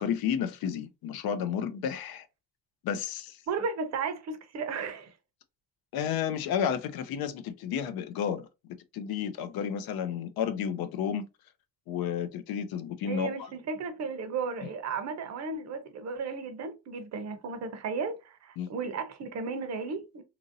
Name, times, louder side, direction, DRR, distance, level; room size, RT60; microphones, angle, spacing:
voice 1, 0.0-2.3 2.8-3.4 5.9-8.5 8.9-11.2 11.9-13.3 18.6-18.7, left 8 dB, 85° left, 0.5 m, -31 dB
voice 2, 3.5-5.1 13.1-20.2, right 4 dB, 50° right, 0.6 m, -34 dB
2.9 x 2.5 x 2.6 m
cardioid pair, 175°, 35 cm